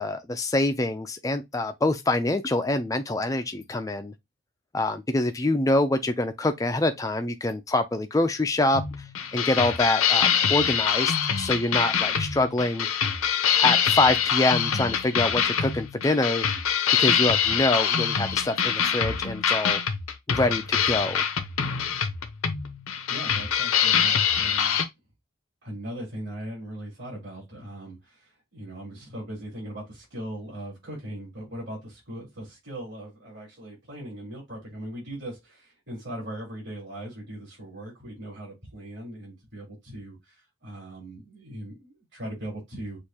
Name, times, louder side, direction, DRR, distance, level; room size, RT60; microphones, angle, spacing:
voice 1, 0.0-4.1 4.7-8.8 9.3-12.9 13.6-16.4 17.0-19.8 20.3-21.2, left 2 dB, 15° left, 0.4 m, -25 dB
sound 1, 8.7-24.9, left 8 dB, 80° left, 0.7 m, -24 dB
voice 2, 23.1-24.9 25.6-43.0, right 1 dB, 55° right, 3.5 m, -39 dB
6.5 x 2.5 x 2.8 m
head